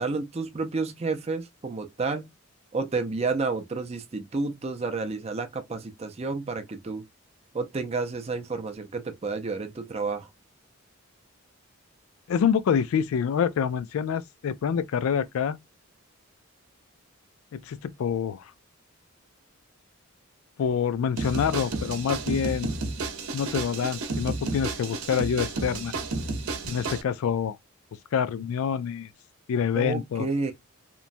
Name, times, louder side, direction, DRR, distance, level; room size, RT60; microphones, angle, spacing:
voice 1, 0.0-2.3 2.7-7.0 7.5-10.3 29.7-30.5, right 4 dB, 30° right, 0.5 m, -30 dB
voice 2, 12.3-15.6 17.5-18.4 20.6-22.7 23.3-25.9 26.7-27.6 28.1-29.1 29.5-30.3, left 7 dB, 70° left, 0.3 m, -26 dB
sound 1, 21.2-27.0, right 3 dB, 80° right, 0.8 m, -32 dB
3.0 x 2.2 x 2.5 m
head